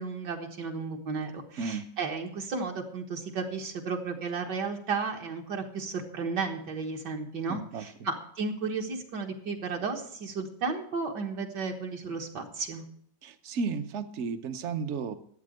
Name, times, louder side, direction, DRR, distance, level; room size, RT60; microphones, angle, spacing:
voice 1, 0.0-12.8, right 4 dB, 65° right, 2 dB, 2.0 m, -34 dB
voice 2, 1.6-1.9 7.5-7.9 13.2-15.1, right 5 dB, 50° right, 10 dB, 0.9 m, -33 dB
12.0 x 8.6 x 6.4 m, 0.65 s
omnidirectional pair, 2.0 m